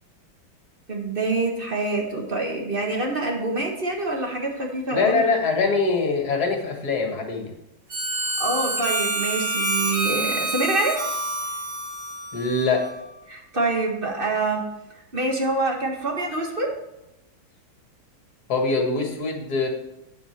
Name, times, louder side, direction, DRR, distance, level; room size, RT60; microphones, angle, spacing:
voice 1, 0.9-5.2 8.4-11.0 13.3-14.6 15.1-16.7, right 2 dB, 30° right, 0 dB, 1.5 m, -26 dB
voice 2, 4.9-7.5 12.3-12.9 18.5-19.7, left 3 dB, 50° left, 2 dB, 2.1 m, -23 dB
Harmonica, 7.9-13.1, right 2 dB, 45° right, 3.1 m, -27 dB
9.1 x 7.8 x 4.5 m, 0.90 s
omnidirectional pair, 2.2 m